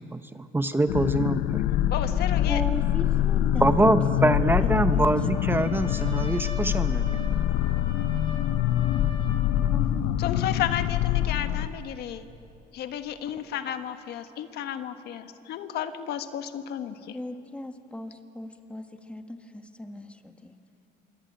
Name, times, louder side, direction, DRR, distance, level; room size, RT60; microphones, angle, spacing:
voice 1, 0.1-1.6 3.6-7.2, right 2 dB, 15° right, 9 dB, 1.0 m, -24 dB
sound 1, 0.9-11.7, left 12 dB, 90° left, 0.8 m, -25 dB
voice 2, 1.9-2.6 10.2-12.3 12.8-17.2, left 10 dB, 75° left, 8 dB, 1.5 m, -33 dB
voice 3, 2.5-4.3 4.6-6.4 9.7-10.2 17.1-20.6, left 1 dB, 5° left, 6 dB, 1.7 m, -38 dB
Trumpet, 5.0-9.8, left 2 dB, 30° left, 7.5 m, -43 dB
27.0 x 23.5 x 9.1 m, 2.7 s
cardioid pair, 110°, 17 cm